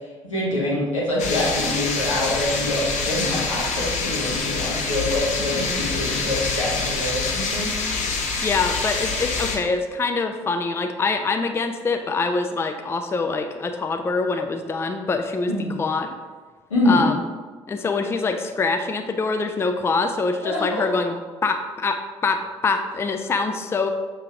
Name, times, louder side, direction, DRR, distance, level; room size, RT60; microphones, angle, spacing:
voice 1, 0.3-7.7 15.5-15.8 16.7-17.0 20.4-21.0, left 1 dB, 85° left, -5 dB, 1.0 m, -25 dB
sound 1, 1.2-9.6, left 4 dB, 50° left, 0.8 m, -26 dB
voice 2, 8.4-15.5 15.8-16.1 16.8-17.2 17.7-23.9, left 4 dB, 15° left, 6 dB, 0.4 m, -24 dB
6.6 x 3.0 x 2.4 m, 1.4 s
figure-of-eight pair, 50°, 16 cm